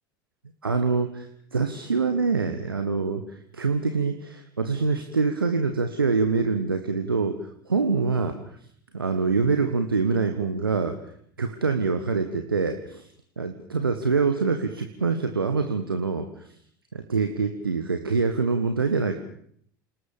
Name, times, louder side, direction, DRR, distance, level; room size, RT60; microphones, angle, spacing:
voice 1, 0.6-8.4 8.9-11.0 11.4-13.1 13.4-16.5 16.9-19.1, right 4 dB, 80° right, 7 dB, 1.7 m, -25 dB
29.0 x 19.5 x 7.2 m, 0.66 s
figure-of-eight pair, 70°, 12 cm